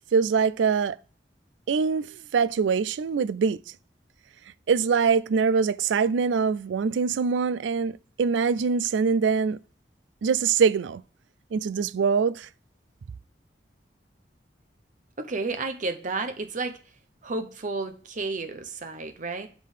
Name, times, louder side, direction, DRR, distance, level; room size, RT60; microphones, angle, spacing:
voice 1, 0.1-1.0 1.7-3.6 4.7-9.6 10.2-11.0 11.5-12.5, right 5 dB, 90° right, 0.4 m, -23 dB
voice 2, 15.2-16.8 17.2-19.5, right 3 dB, 45° right, 0.7 m, -31 dB
7.4 x 3.7 x 4.9 m
head